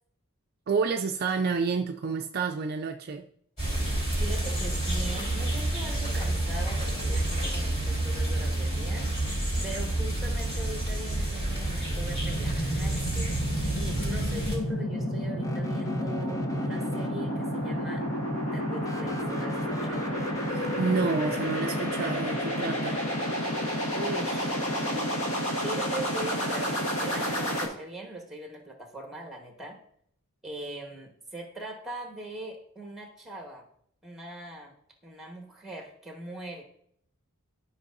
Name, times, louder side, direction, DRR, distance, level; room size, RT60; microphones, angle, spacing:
voice 1, 0.7-3.2 20.5-23.0, right 5 dB, 45° right, 5 dB, 0.3 m, -29 dB
sound 1, 3.6-14.6, right 1 dB, 30° left, 3.2 m, -29 dB
voice 2, 4.2-9.1 9.6-18.1 18.5-20.1 23.5-26.7 27.0-29.8 30.4-33.7 34.0-34.7 35.0-36.6, right 1 dB, ahead, 1 dB, 1.3 m, -41 dB
sound 2, 11.2-27.6, equal, 70° left, 1.5 m, -30 dB
sound 3, 15.4-17.5 18.8-22.2, left 2 dB, 15° left, 0.5 m, -40 dB
12.0 x 5.3 x 2.6 m, 0.67 s
head